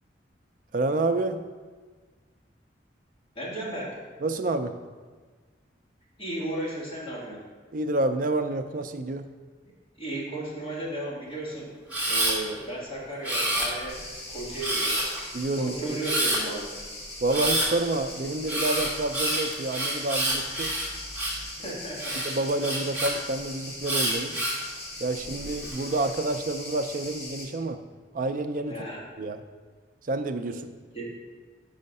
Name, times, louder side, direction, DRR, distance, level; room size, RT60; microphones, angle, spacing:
voice 1, 0.7-1.4 4.2-4.8 7.7-9.3 15.3-16.0 17.2-20.7 21.6-21.8 22.2-24.4 25.0-27.8 28.1-28.8 29.2-29.4 30.0-30.7, right 2 dB, 50° right, 8 dB, 0.4 m, -28 dB
voice 2, 3.4-4.0 6.2-7.4 10.0-11.7 12.0-14.0 14.3-15.0 15.6-16.7 21.6-22.2 28.7-29.0 30.9-31.0, right 1 dB, 30° left, -7 dB, 2.0 m, -34 dB
Camera, 11.9-12.3 13.2-14.0 14.6-15.2 16.0-16.4 17.3-17.7 18.5-21.4 22.0-23.1 23.8-24.6 25.2-25.8, right 1 dB, 10° right, 1.6 m, -27 dB
sound 1, 13.9-27.4, left 2 dB, 75° left, 2.0 m, -40 dB
5.5 x 5.1 x 5.4 m, 1.5 s
head